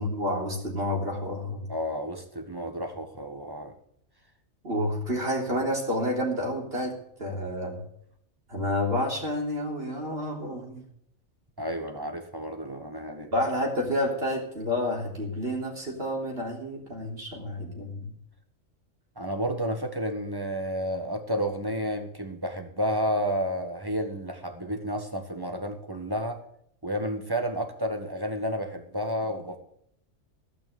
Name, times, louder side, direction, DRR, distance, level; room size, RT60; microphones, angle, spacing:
voice 1, 0.0-1.7 4.6-7.8 8.5-10.8 13.3-18.1, left 1 dB, 45° right, -1 dB, 3.8 m, -29 dB
voice 2, 1.7-3.8 11.6-13.3 19.2-26.4 26.8-29.6, equal, 15° right, 4 dB, 1.5 m, -31 dB
15.5 x 6.1 x 9.2 m, 0.70 s
omnidirectional pair, 1.4 m